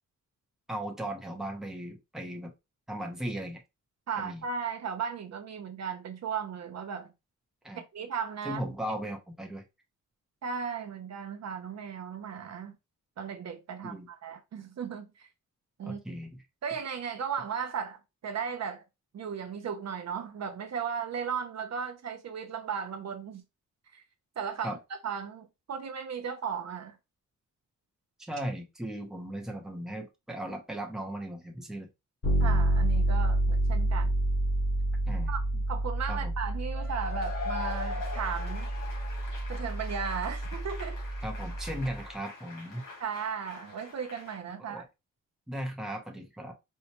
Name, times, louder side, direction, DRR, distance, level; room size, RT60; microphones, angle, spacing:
voice 1, 0.7-2.5 2.9-3.6 4.2-4.4 7.6-7.8 8.4-9.6 13.8-14.1 15.8-16.4 24.6-24.8 28.2-31.9 35.1-35.3 36.1-36.3 41.2-42.8 44.7-44.8 45.5-46.5, right 1 dB, ahead, 0.8 m, -37 dB
voice 2, 4.1-7.1 7.7-8.6 10.4-12.7 13.2-15.3 15.8-16.0 16.6-18.8 19.1-23.4 23.9-24.0 24.4-24.8 25.0-27.0 32.4-34.1 35.3-38.7 39.5-41.0 43.0-44.9, right 6 dB, 55° right, 0.6 m, -36 dB
Bass guitar, 32.2-42.0, right 1 dB, 40° left, 1.6 m, -29 dB
Cheering / Applause / Crowd, 36.7-44.4, left 5 dB, 90° left, 1.7 m, -42 dB
4.4 x 2.2 x 2.9 m
wide cardioid pair, 140°, 32 cm